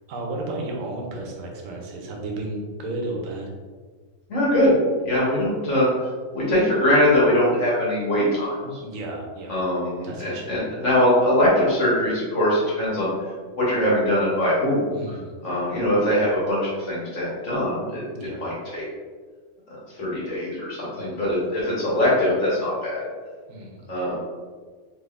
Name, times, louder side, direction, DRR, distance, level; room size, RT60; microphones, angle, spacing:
voice 1, 0.1-3.5 8.8-9.6 10.0-10.5 14.9-15.3 18.1-18.5 20.9-21.2 23.5-23.9, right 2 dB, 85° right, 0 dB, 1.1 m, -33 dB
voice 2, 4.3-4.8 5.0-5.9 6.3-8.8 9.5-13.1 13.6-14.9 15.4-18.0 18.4-18.8 19.7-23.0 23.9-24.2, left 1 dB, 65° left, -7 dB, 1.6 m, -22 dB
3.4 x 3.4 x 2.4 m, 1.5 s
omnidirectional pair, 1.3 m